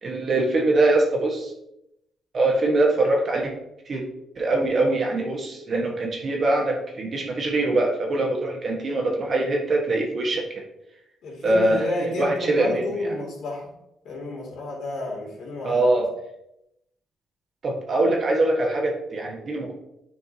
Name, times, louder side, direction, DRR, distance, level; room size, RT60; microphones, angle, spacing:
voice 1, 0.0-1.5 2.3-3.5 3.9-4.0 4.3-10.6 11.4-11.8 12.2-12.8 15.6-16.1 17.6-19.7, right 2 dB, 45° right, 0 dB, 1.3 m, -23 dB
voice 2, 11.2-13.7 14.0-15.8, left 1 dB, 75° left, -3 dB, 2.6 m, -31 dB
9.4 x 4.6 x 2.8 m, 0.84 s
cardioid pair, 90°, 0 cm